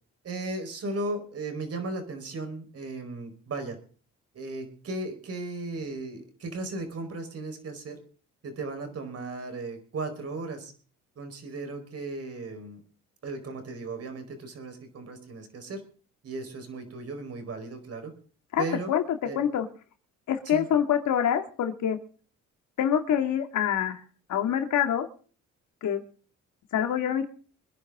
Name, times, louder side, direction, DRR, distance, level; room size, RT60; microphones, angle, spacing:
voice 1, 0.2-3.8 4.3-8.0 8.4-10.7 11.2-12.8 13.2-15.8 16.2-18.1 18.6-18.9 19.2-19.4 20.4-20.7, right 2 dB, 50° right, 6 dB, 4.6 m, -36 dB
voice 2, 18.5-19.7 20.3-22.0 22.8-24.0 24.3-25.1 25.8-26.0 26.7-27.3, left 9 dB, 70° left, 6 dB, 2.2 m, -26 dB
25.0 x 10.5 x 3.7 m, 0.41 s
cardioid pair, 90°, 30 cm